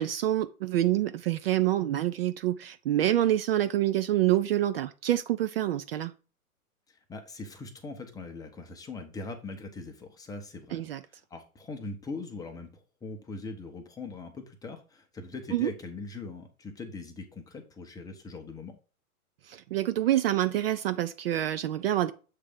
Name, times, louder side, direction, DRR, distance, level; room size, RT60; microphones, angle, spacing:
voice 1, 0.0-6.1 10.7-11.0 15.5-15.7 19.5-22.1, right 13 dB, 45° right, 0.4 m, -27 dB
voice 2, 6.9-18.8, left 3 dB, 10° left, 0.7 m, -41 dB
7.4 x 3.3 x 4.9 m
hypercardioid pair, 130°, 43 cm